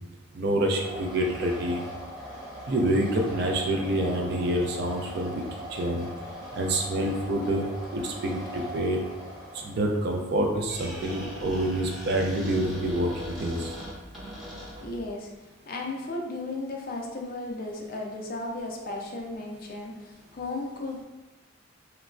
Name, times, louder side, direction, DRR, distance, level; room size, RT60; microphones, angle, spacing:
voice 1, 0.3-1.8 2.7-5.4 5.7-6.1 6.5-7.6 7.9-9.0 9.5-13.7, right 1 dB, 50° right, 1 dB, 0.4 m, -27 dB
sound 1, 0.8-9.7, equal, 25° right, 1.1 m, -40 dB
Squeak, 10.6-15.1, equal, ahead, 0.6 m, -40 dB
voice 2, 14.8-15.3 15.7-21.0, left 2 dB, 45° left, 0 dB, 0.4 m, -35 dB
3.0 x 2.2 x 2.4 m, 1.2 s
head